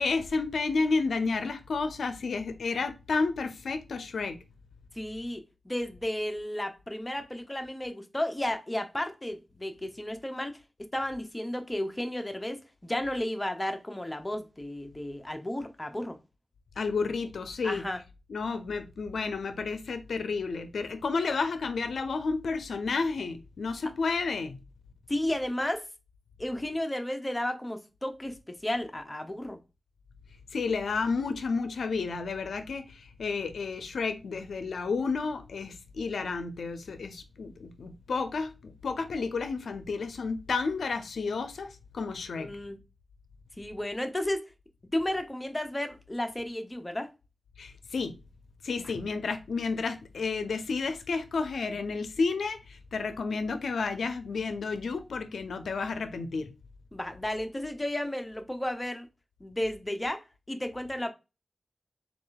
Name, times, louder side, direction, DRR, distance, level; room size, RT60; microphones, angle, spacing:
voice 1, 0.0-4.4 16.8-17.9 18.3-24.6 30.5-42.5 47.6-48.2 48.6-56.5, left 4 dB, 90° left, 0.5 m, -31 dB
voice 2, 5.0-10.6 10.9-16.2 17.6-18.0 25.1-25.8 26.4-29.6 42.4-42.8 43.6-44.5 44.9-47.1 56.9-59.1 59.4-60.2 60.5-61.1, left 1 dB, 20° left, 0.7 m, -33 dB
3.6 x 2.4 x 3.9 m
cardioid pair, 55°, 0 cm